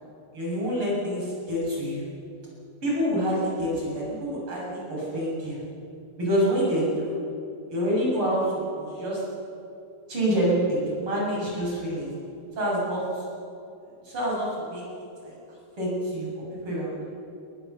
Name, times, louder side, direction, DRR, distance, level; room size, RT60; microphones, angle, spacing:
voice 1, 0.3-2.1 2.8-5.6 6.2-7.2 7.7-9.2 10.1-12.1 12.6-13.3 14.0-14.8 15.2-16.3 16.6-17.0, equal, 40° right, -5 dB, 7.9 m, -27 dB
21.5 x 19.5 x 6.9 m, 2.7 s
omnidirectional pair, 3.5 m